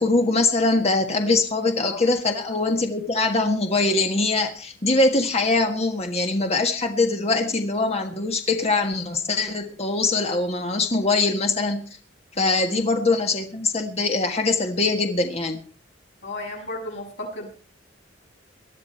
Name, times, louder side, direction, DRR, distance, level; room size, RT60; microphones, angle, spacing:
voice 1, 0.0-11.8 12.4-15.6, left 3 dB, 35° left, 4 dB, 1.5 m, -22 dB
voice 2, 16.2-17.5, left 1 dB, 75° left, -3 dB, 7.8 m, -34 dB
19.0 x 12.5 x 4.4 m, 0.37 s
head